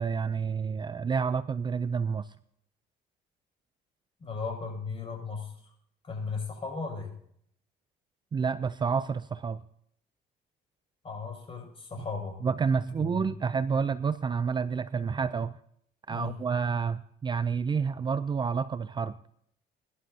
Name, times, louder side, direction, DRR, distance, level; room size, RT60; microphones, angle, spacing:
voice 1, 0.0-2.3 8.3-9.6 12.4-15.5 16.1-19.1, right 5 dB, 25° right, 14 dB, 0.4 m, -29 dB
voice 2, 4.2-5.5 6.0-7.1 11.0-12.4 13.0-13.2 16.1-16.4, left 4 dB, 35° left, 1 dB, 6.3 m, -36 dB
23.5 x 11.5 x 2.8 m, 0.67 s
cardioid pair, 110°, 17 cm